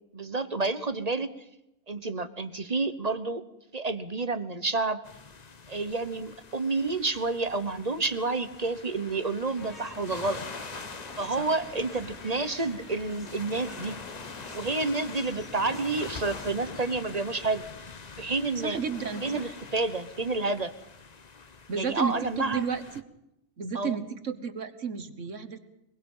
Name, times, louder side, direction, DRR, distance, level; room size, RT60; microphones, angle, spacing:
voice 1, 0.1-1.3 1.9-3.4 3.7-5.0 5.7-10.4 11.2-14.0 14.5-17.6 18.2-18.8 19.2-20.7 21.7-22.7 23.7-24.0, right 3 dB, 35° right, 12 dB, 1.1 m, -29 dB
sound 1, 5.0-23.0, left 4 dB, 35° left, 1.0 m, -44 dB
sound 2, 9.6-17.9, left 1 dB, ahead, 3.4 m, -48 dB
voice 2, 18.6-19.6 21.7-22.8 23.6-25.6, right 6 dB, 70° right, 10 dB, 1.8 m, -32 dB
23.0 x 22.5 x 5.6 m, 0.86 s
omnidirectional pair, 1.3 m